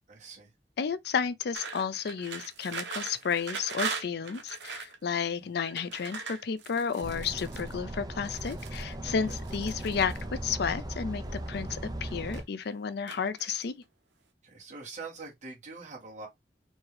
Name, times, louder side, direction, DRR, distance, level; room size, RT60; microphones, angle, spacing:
voice 1, 0.1-0.5 9.0-9.4 14.4-16.3, right 4 dB, 45° right, 1.9 m, -44 dB
voice 2, 0.8-10.1 10.4-11.2 11.5-13.8, left 6 dB, 65° left, 0.5 m, -32 dB
sound 1, 1.5-5.0 5.6-7.7 8.2-8.9 9.3-10.2 11.1-11.8 12.1-12.7 13.1-13.8, right 5 dB, 85° right, 0.9 m, -40 dB
sound 2, 7.0-12.4, right 1 dB, 25° right, 0.6 m, -38 dB
4.4 x 2.8 x 3.2 m
head